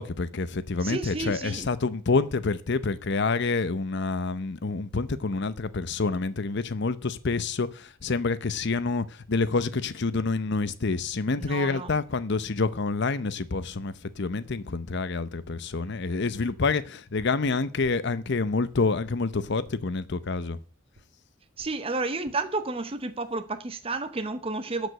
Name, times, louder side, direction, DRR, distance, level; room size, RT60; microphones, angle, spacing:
voice 1, 0.0-20.6, left 4 dB, 60° left, 0.7 m, -28 dB
voice 2, 0.8-1.7 11.4-11.9 21.6-24.9, right 3 dB, 30° right, 0.8 m, -31 dB
sound 1, 17.2-17.4 17.8-18.1 18.4-19.2 19.6-19.8 20.3-20.5 20.9-21.1 21.6-21.8 22.2-22.4 23.0-23.3, right 1 dB, 80° right, 1.7 m, -53 dB
12.5 x 5.2 x 7.7 m
head